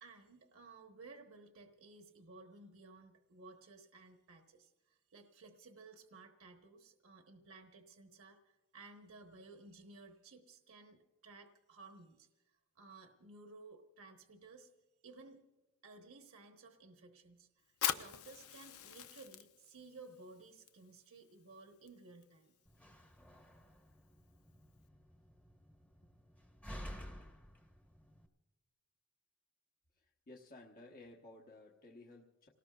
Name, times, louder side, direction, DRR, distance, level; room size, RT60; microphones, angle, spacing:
voice 1, 0.0-14.7 15.0-15.4 15.8-22.5, right 3 dB, 70° right, 3 dB, 1.1 m, -57 dB
Fire, 17.7-24.9, left 10 dB, 85° left, 0.7 m, -45 dB
Slam, 22.7-28.3, equal, 5° left, 1.1 m, -52 dB
voice 2, 29.9-32.5, left 2 dB, 45° left, -1 dB, 1.1 m, -56 dB
29.5 x 18.5 x 2.4 m, 1.1 s
head